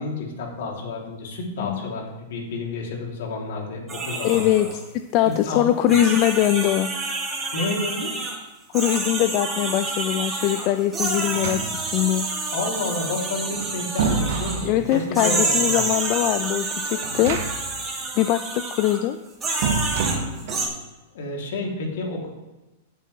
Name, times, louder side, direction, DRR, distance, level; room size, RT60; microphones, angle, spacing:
voice 1, 0.0-4.7 5.3-5.7 7.5-8.1 12.5-15.9 21.1-22.3, left 3 dB, 70° left, -1 dB, 3.0 m, -30 dB
voice 2, 1.6-1.9 4.2-4.8 5.1-6.9 8.7-12.3 14.6-17.4 18.2-19.2, left 12 dB, 45° left, 9 dB, 0.4 m, -22 dB
sound 1, 3.9-4.8 5.3-5.4 5.9-8.4 8.7-14.7 15.1-19.0 19.4-20.7, right 3 dB, 20° right, 2.5 m, -28 dB
sound 2, 11.2-12.1 13.3-15.2 17.0-17.8 18.1-18.2 19.6-20.7, right 5 dB, 60° right, 1.5 m, -28 dB
16.0 x 6.8 x 3.3 m, 1.1 s
hypercardioid pair, 125°, 0 cm